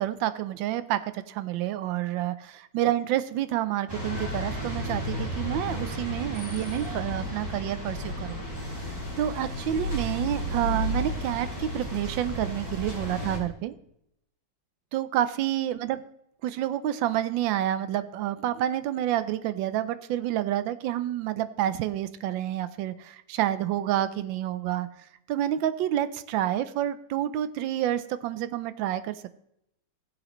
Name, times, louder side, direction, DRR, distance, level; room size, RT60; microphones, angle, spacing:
voice 1, 0.0-8.4 9.2-13.7 14.9-16.0 16.4-24.9 25.3-29.4, right 12 dB, 80° right, 13 dB, 1.3 m, -29 dB
sound 1, 3.9-13.4, equal, 10° right, 2.4 m, -33 dB
15.5 x 7.9 x 3.0 m, 0.78 s
omnidirectional pair, 2.1 m